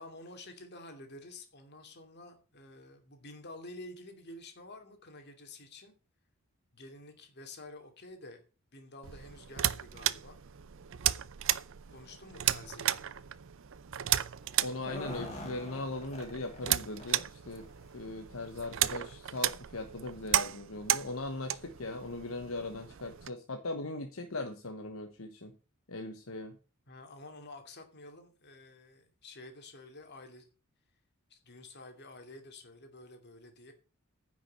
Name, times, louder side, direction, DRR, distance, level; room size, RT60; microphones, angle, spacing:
voice 1, 0.0-6.0 6.7-8.4 8.7-10.4 11.9-13.1 26.9-30.4 31.3-33.7, left 2 dB, 50° left, 6 dB, 2.6 m, -50 dB
sound 1, 9.0-23.3, right 12 dB, 60° right, 0.6 m, -34 dB
voice 2, 14.6-17.7 17.9-25.5 25.9-26.6, left 2 dB, 70° left, 6 dB, 1.2 m, -39 dB
sound 2, 14.7-16.7 17.0-17.1 17.5-17.7 18.5-18.6 19.0-19.1, left 1 dB, 30° left, 3.3 m, -43 dB
9.9 x 6.2 x 7.7 m, 0.35 s
head